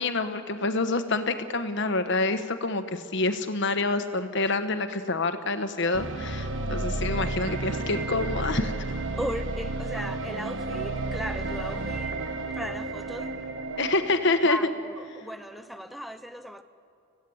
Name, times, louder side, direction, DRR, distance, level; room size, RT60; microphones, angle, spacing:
voice 1, 0.0-8.7 13.8-14.7, left 3 dB, 60° left, 1.3 m, -27 dB
sound 1, 5.9-15.0, right 2 dB, 65° right, 1.3 m, -32 dB
voice 2, 9.2-12.2 12.5-13.4 14.4-16.6, equal, ahead, 0.7 m, -37 dB
26.5 x 15.5 x 8.7 m
head